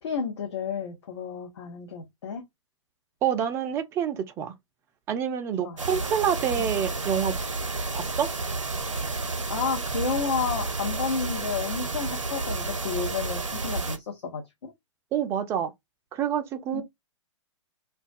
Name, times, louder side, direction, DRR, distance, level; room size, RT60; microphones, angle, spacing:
voice 1, 0.0-2.4 5.6-5.8 6.6-6.7 9.5-14.7 16.7-16.8, left 5 dB, 60° left, 0.7 m, -31 dB
voice 2, 3.2-4.5 5.1-7.4 7.9-8.3 15.1-15.7 16.1-16.8, right 8 dB, 15° right, 0.3 m, -27 dB
sound 1, 5.8-14.0, right 3 dB, 80° right, 0.6 m, -31 dB
2.2 x 2.2 x 2.4 m
figure-of-eight pair, 110°, 16 cm